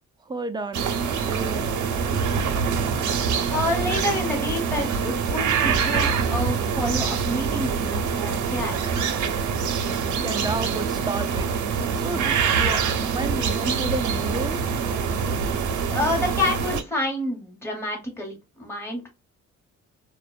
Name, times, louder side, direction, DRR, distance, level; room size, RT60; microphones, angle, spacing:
voice 1, 0.3-0.8 1.2-1.7 10.2-11.5 11.9-14.6, right 3 dB, 15° right, 0.4 m, -31 dB
sound 1, 0.7-16.8, right 6 dB, 70° right, 0.6 m, -25 dB
voice 2, 3.5-8.9 15.9-19.1, left 1 dB, 10° left, 1.1 m, -28 dB
2.5 x 2.2 x 2.3 m
cardioid pair, 90°, 30 cm